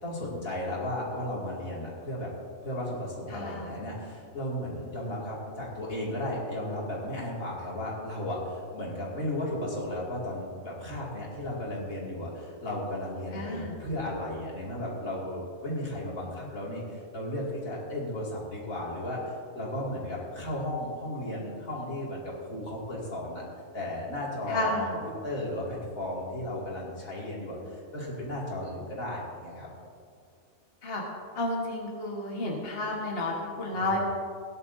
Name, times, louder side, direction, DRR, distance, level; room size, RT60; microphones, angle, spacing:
voice 1, 0.0-2.3 2.6-23.4 23.7-24.8 25.0-29.7 33.7-33.9, left 1 dB, 80° left, -5 dB, 3.0 m, -35 dB
voice 2, 3.3-3.8 13.3-13.8 24.5-25.1 30.8-31.0 31.3-34.1, left 2 dB, 45° left, -2 dB, 1.7 m, -31 dB
18.0 x 10.5 x 2.7 m, 2.3 s
omnidirectional pair, 1.4 m